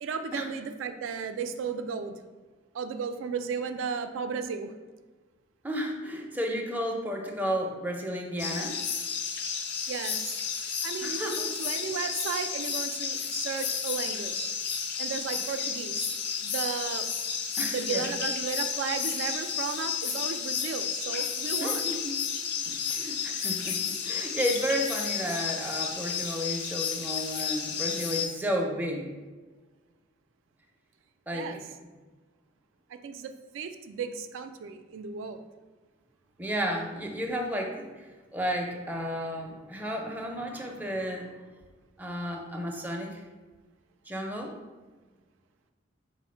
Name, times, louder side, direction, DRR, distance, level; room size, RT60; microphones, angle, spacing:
voice 1, 0.0-2.1 2.7-4.7 9.9-10.3 10.6-14.5 15.0-16.1 16.4-17.1 17.7-21.8 31.3-31.6 32.9-35.4, right 6 dB, 90° right, 9 dB, 0.3 m, -35 dB
voice 2, 5.6-8.8 11.0-11.4 17.6-18.0 21.6-22.2 22.7-29.1 31.3-31.5 36.4-38.1 38.3-41.4 42.0-43.2 44.1-44.5, equal, 10° right, 0 dB, 0.4 m, -32 dB
sound 1, 8.4-28.3, left 7 dB, 60° left, 0.4 m, -32 dB
4.3 x 2.0 x 4.3 m, 1.3 s
head